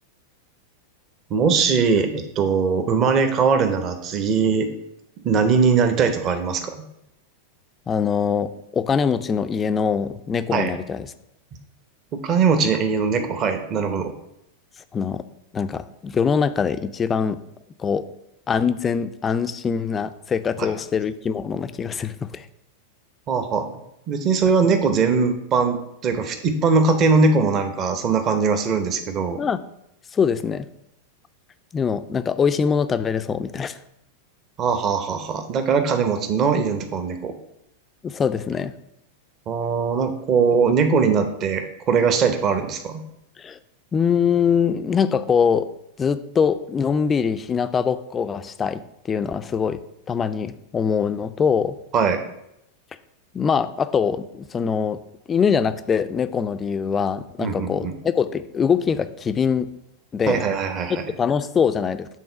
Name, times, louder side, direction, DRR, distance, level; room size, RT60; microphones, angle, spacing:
voice 1, 1.3-4.7 5.2-6.8 10.5-10.7 12.1-14.1 20.6-20.7 23.3-23.7 24.1-29.4 34.6-37.3 39.5-43.0 51.9-52.2 57.4-57.9 60.3-61.0, right 5 dB, 35° right, 8 dB, 0.8 m, -21 dB
voice 2, 7.9-11.1 14.9-15.2 15.5-17.4 17.8-18.0 18.5-22.5 29.4-29.6 30.1-30.7 31.7-33.8 38.0-38.7 43.4-43.6 43.9-45.7 46.0-49.8 50.1-51.8 53.3-55.0 55.3-59.7 60.1-60.5 60.9-62.1, left 6 dB, 20° left, 12 dB, 0.4 m, -23 dB
7.5 x 3.7 x 5.7 m, 0.82 s
figure-of-eight pair, 90°, 0 cm